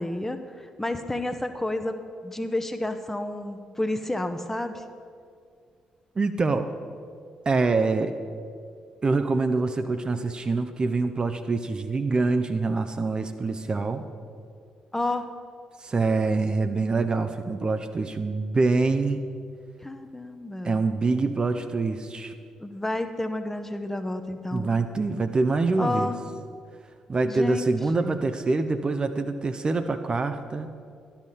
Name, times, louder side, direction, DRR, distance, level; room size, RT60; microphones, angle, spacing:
voice 1, 0.0-2.0 2.2-4.8 14.9-15.3 19.8-20.8 22.6-24.7 25.8-26.2 27.3-27.7 28.0-28.2, left 2 dB, 10° left, 8 dB, 0.8 m, -30 dB
voice 2, 6.2-6.7 7.5-8.1 9.0-14.1 15.8-19.2 20.6-22.3 24.5-26.1 27.1-30.7, right 3 dB, 30° right, 8 dB, 0.6 m, -25 dB
11.5 x 5.7 x 6.5 m, 2.2 s
figure-of-eight pair, 40°, 3 cm